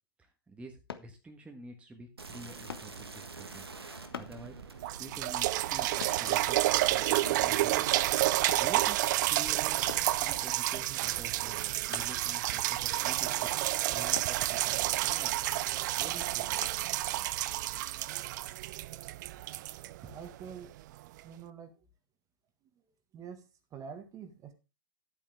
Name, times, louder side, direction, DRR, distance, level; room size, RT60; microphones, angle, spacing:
voice 1, 0.2-3.7 3.9-4.5 5.0-5.9 6.2-7.9 8.3-9.0 9.3-15.3 16.0-16.8, right 2 dB, 10° right, 3 dB, 1.5 m, -48 dB
sound 1, 0.9-1.1 2.7-2.9 4.1-4.4 6.0-6.2 7.3-7.5 8.5-8.7 9.9-10.1 11.9-12.2 14.1-14.4 16.6-16.8 17.4-17.5, left 7 dB, 75° left, 1.1 m, -42 dB
sound 2, 2.2-8.4, right 4 dB, 85° right, 1.6 m, -46 dB
sound 3, 4.3-4.4 4.8-20.6 21.2-21.3, right 16 dB, 50° right, 0.5 m, -30 dB
voice 2, 20.0-20.7 21.2-21.7 23.1-24.5, right 7 dB, 25° right, 9 dB, 1.7 m, -46 dB
11.0 x 8.8 x 3.5 m, 0.29 s
figure-of-eight pair, 105°, 13 cm